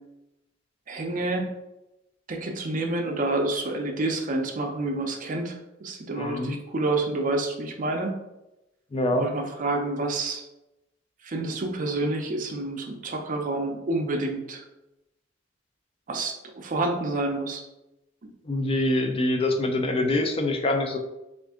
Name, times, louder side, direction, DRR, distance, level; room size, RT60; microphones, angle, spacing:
voice 1, 0.9-1.5 2.3-5.5 5.8-8.1 9.1-10.4 11.2-14.6 16.1-17.6 18.2-18.3, right 2 dB, 40° right, 3 dB, 0.5 m, -28 dB
voice 2, 6.2-6.6 8.9-9.3 18.5-21.0, left 1 dB, 30° left, 4 dB, 0.4 m, -25 dB
3.5 x 2.5 x 3.5 m, 0.93 s
head